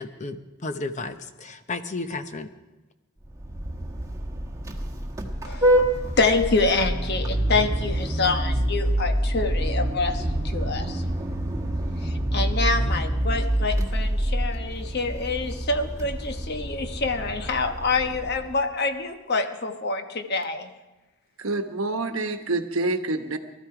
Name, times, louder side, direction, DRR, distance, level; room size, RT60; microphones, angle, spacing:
voice 1, 0.0-2.5, left 3 dB, 35° left, 9 dB, 0.7 m, -33 dB
Vehicle horn car horn honking, 3.2-18.6, right 1 dB, 15° right, 1.3 m, -27 dB
voice 2, 6.2-11.0 12.0-20.7, left 3 dB, 50° left, 7 dB, 1.1 m, -26 dB
voice 3, 21.4-23.4, right 2 dB, 70° right, 8 dB, 1.1 m, -27 dB
19.0 x 13.0 x 4.9 m, 1.1 s
head